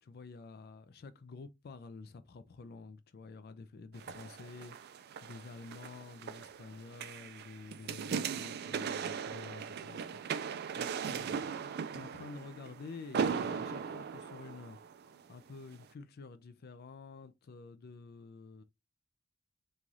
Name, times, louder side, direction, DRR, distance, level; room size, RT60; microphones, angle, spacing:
voice 1, 0.0-10.5 10.8-11.4 11.9-14.8 15.3-18.6, left 4 dB, 50° left, 0.4 m, -49 dB
sound 1, 3.9-15.2 15.7-15.8, right 6 dB, 50° right, 0.3 m, -39 dB
3.1 x 2.4 x 3.9 m
head